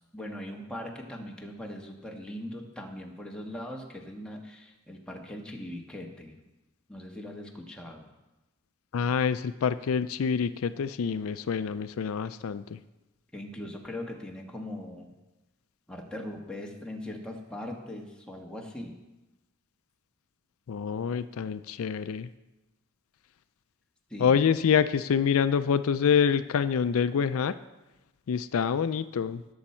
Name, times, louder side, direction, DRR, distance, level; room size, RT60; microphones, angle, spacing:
voice 1, 0.0-6.4 6.9-8.1 13.3-15.1 15.9-18.9 24.1-24.5, left 1 dB, 5° left, 0 dB, 1.4 m, -40 dB
voice 2, 8.9-12.8 20.7-22.3 24.2-27.6 28.3-29.4, left 7 dB, 75° left, 13 dB, 0.4 m, -26 dB
18.5 x 7.1 x 4.4 m, 1.0 s
head